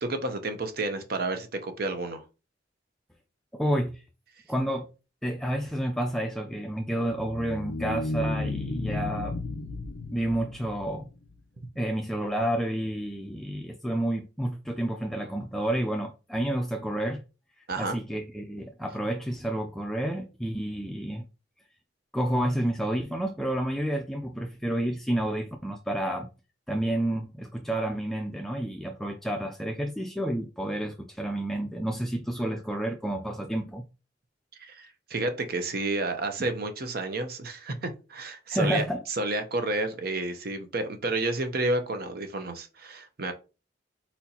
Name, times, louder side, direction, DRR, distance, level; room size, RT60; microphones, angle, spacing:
voice 1, 0.0-2.2 17.7-18.0 34.6-43.3, right 2 dB, 55° right, 0.8 m, -30 dB
voice 2, 3.5-4.0 4.5-4.9 5.2-9.4 10.1-11.1 11.8-17.2 17.8-21.2 22.1-26.3 26.7-33.8 38.5-39.0, right 1 dB, ahead, 0.4 m, -30 dB
sound 1, 6.9-11.4, left 2 dB, 75° left, 0.5 m, -34 dB
4.3 x 4.3 x 2.8 m
head